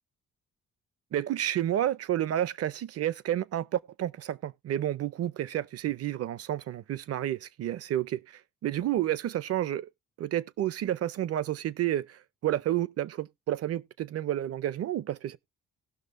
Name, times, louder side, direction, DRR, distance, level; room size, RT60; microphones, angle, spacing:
voice 1, 1.1-9.9 10.2-15.4, right 12 dB, 50° right, 0.6 m, -30 dB
18.5 x 6.2 x 2.5 m
cardioid pair, 150°, 30 cm